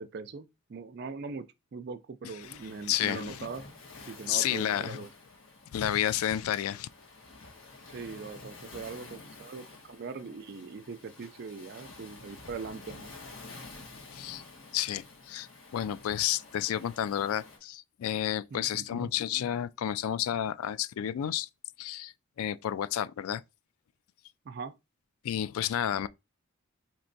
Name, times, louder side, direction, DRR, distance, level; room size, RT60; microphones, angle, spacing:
voice 1, 0.0-1.5 1.7-3.6 4.1-5.1 7.9-13.1 18.5-19.1 24.5-24.7, right 5 dB, 50° right, 0.4 m, -41 dB
Waves surf, 2.4-17.6, left 3 dB, 65° left, 1.3 m, -50 dB
voice 2, 2.9-3.4 4.3-5.0 5.7-6.9 14.1-14.4 14.7-21.5 21.8-23.4 25.2-26.1, left 10 dB, 85° left, 0.3 m, -31 dB
4.4 x 2.8 x 2.6 m
head